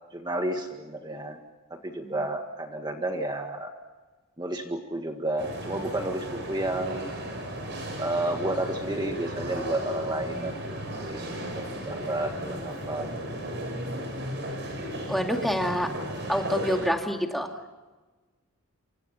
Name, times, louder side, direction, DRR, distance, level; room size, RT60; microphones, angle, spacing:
voice 1, 0.1-1.4 1.7-3.7 4.4-7.1 8.0-13.2, right 1 dB, 20° right, 3 dB, 1.8 m, -31 dB
sound 1, 5.4-16.9, right 1 dB, 55° right, 7.8 m, -35 dB
voice 2, 15.1-15.9 16.3-17.6, equal, ahead, 2 dB, 2.4 m, -27 dB
28.5 x 26.0 x 5.8 m, 1.3 s
head